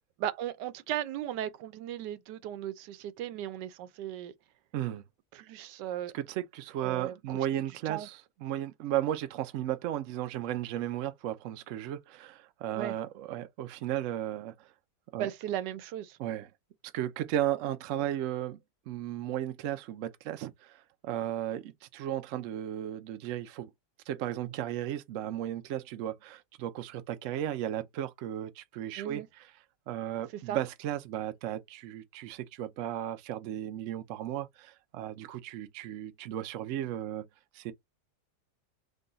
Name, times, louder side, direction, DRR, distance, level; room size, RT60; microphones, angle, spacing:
voice 1, 0.2-4.3 5.3-6.1 6.8-7.4 7.9-8.1 12.7-13.0 15.2-16.2 28.9-29.3 30.3-30.6, right 11 dB, 90° right, 1.2 m, -36 dB
voice 2, 4.7-5.0 6.1-14.7 15.1-15.3 16.2-16.5 16.9-18.6 18.9-23.7 24.1-29.5 29.9-37.3 37.5-37.7, right 12 dB, 65° right, 0.8 m, -35 dB
3.8 x 2.2 x 3.8 m
omnidirectional pair, 1.8 m